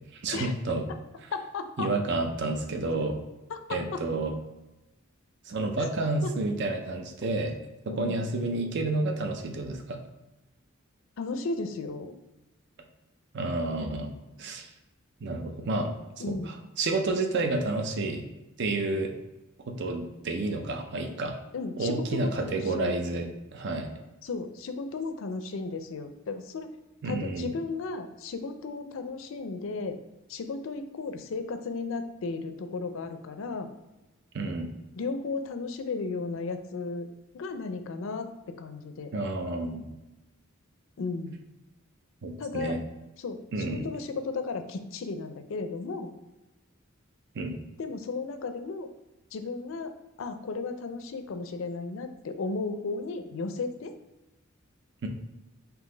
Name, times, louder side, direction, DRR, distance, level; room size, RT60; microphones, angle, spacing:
voice 1, 0.1-0.8 1.8-3.2 3.7-4.3 5.4-7.5 7.9-10.0 13.3-14.7 15.2-15.9 16.3-18.2 18.6-19.1 19.7-21.4 21.8-23.9 27.0-27.5 34.3-34.7 39.1-39.9 42.2-42.8 43.5-43.9 47.3-47.6 55.0-55.1, right 2 dB, 55° right, 5 dB, 0.5 m, -30 dB
voice 2, 1.3-1.9 3.5-4.0 5.8-5.9 6.2-6.3 7.9-8.2 11.2-12.1 16.2-16.5 21.5-23.0 24.2-26.7 27.0-30.0 30.3-33.7 35.0-37.1 37.3-39.1 41.0-41.4 42.4-42.8 43.2-46.1 47.8-48.9 49.3-49.9 50.2-53.9, left 4 dB, 65° left, 8 dB, 0.4 m, -34 dB
3.8 x 2.8 x 3.8 m, 1.0 s
head